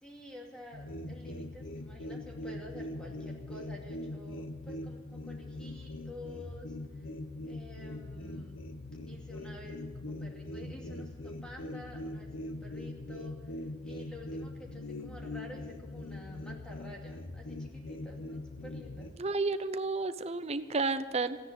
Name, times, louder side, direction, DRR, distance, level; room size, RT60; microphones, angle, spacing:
voice 1, 0.0-7.1 7.4-8.5 9.1-19.1, left 1 dB, 5° left, -1 dB, 2.4 m, -50 dB
sound 1, 0.7-19.1, left 1 dB, 90° left, 1.0 m, -42 dB
voice 2, 19.2-21.4, right 3 dB, 30° right, 11 dB, 0.7 m, -31 dB
15.0 x 9.9 x 7.6 m, 1.3 s
head